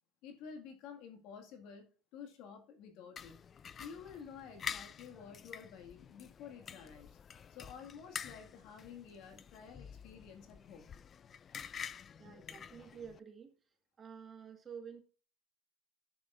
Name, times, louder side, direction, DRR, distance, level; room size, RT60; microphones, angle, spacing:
voice 1, 0.2-3.5 3.8-7.2 7.5-11.0, left 6 dB, 65° left, 4 dB, 2.0 m, -51 dB
sound 1, 3.2-13.2, left 7 dB, 30° left, 0.3 m, -48 dB
voice 2, 12.2-13.5 14.0-15.0, right 7 dB, 25° right, 4 dB, 1.7 m, -50 dB
11.0 x 6.8 x 2.6 m, 0.39 s
supercardioid pair, 130°, 0 cm